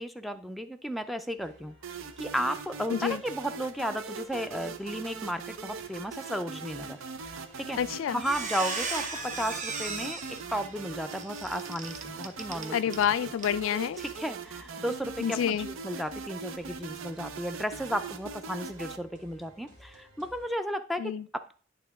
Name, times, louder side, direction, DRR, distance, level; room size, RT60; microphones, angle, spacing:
voice 1, 0.0-7.8 8.1-12.8 14.0-21.5, equal, ahead, 0.4 m, -34 dB
sound 1, 1.4-20.5, right 1 dB, 65° right, 2.4 m, -55 dB
sound 2, 1.8-19.0, right 5 dB, 85° right, 0.6 m, -41 dB
Squeak, 7.6-7.8 8.1-13.1 13.4-13.6 14.0-14.1, right 4 dB, 40° right, 0.8 m, -37 dB
voice 2, 7.8-8.2 12.7-14.0 15.2-15.7 21.0-21.2, left 9 dB, 75° left, 0.3 m, -28 dB
10.5 x 3.7 x 3.5 m
head